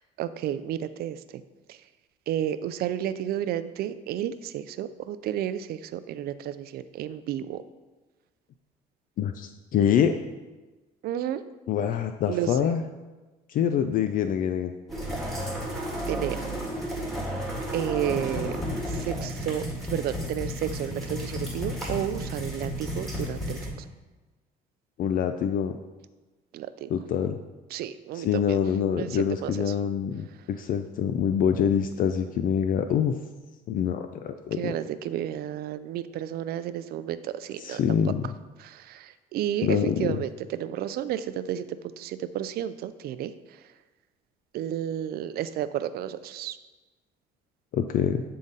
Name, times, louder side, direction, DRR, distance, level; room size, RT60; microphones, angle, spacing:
voice 1, 0.2-1.2 2.3-7.6 11.0-11.4 12.3-12.5 16.1-16.4 17.7-18.5 19.1-19.6 19.9-23.6 26.5-26.9 27.7-28.6 29.0-29.5 34.6-37.8 38.6-39.0 39.3-41.6 42.0-43.3 44.5-46.6, right 11 dB, 65° right, 13 dB, 0.4 m, -31 dB
voice 2, 9.2-10.2 11.7-12.8 13.5-14.7 25.0-25.7 26.9-27.4 28.1-33.1 33.7-34.8 37.6-38.3 39.6-40.2 47.7-48.2, left 8 dB, 55° left, 8 dB, 0.4 m, -25 dB
sound 1, 14.9-23.7, equal, ahead, 1.7 m, -32 dB
8.4 x 3.8 x 4.0 m, 1.2 s
cardioid pair, 110°, 17 cm